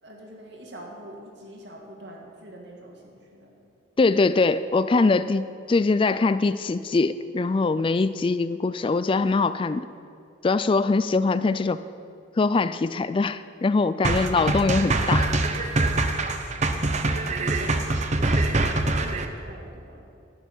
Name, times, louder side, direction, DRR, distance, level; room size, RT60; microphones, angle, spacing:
voice 1, 0.0-3.6 16.5-20.0, right 1 dB, 65° right, 0 dB, 2.3 m, -44 dB
voice 2, 4.0-9.9 10.4-11.8 12.4-15.3, left 3 dB, 25° left, 14 dB, 0.3 m, -22 dB
sound 1, 14.0-19.3, right 2 dB, 35° right, 0.8 m, -24 dB
11.5 x 6.9 x 9.8 m, 2.5 s
head